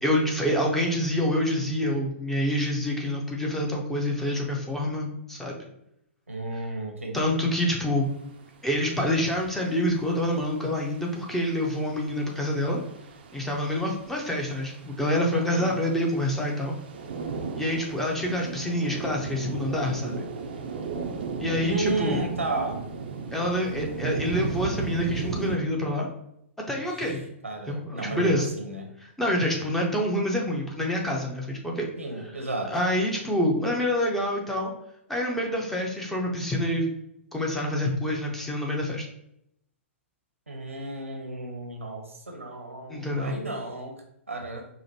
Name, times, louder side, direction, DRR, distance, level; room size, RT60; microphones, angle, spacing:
voice 1, 0.0-5.7 7.1-8.1 8.6-12.8 13.3-16.8 17.6-20.3 21.4-22.2 23.3-26.1 26.7-27.2 27.7-28.5 29.0-31.9 32.4-34.7 35.1-36.9 37.3-39.1 42.9-43.4, left 1 dB, 5° left, -1 dB, 0.6 m, -27 dB
voice 2, 6.3-7.3 15.3-15.8 21.6-22.8 26.7-26.8 27.4-28.9 32.0-32.7 40.5-44.7, right 2 dB, 80° right, 3 dB, 0.8 m, -33 dB
sound 1, 8.1-25.6, right 5 dB, 50° right, 0.5 m, -36 dB
4.9 x 2.1 x 2.8 m, 0.77 s
figure-of-eight pair, 115°, 7 cm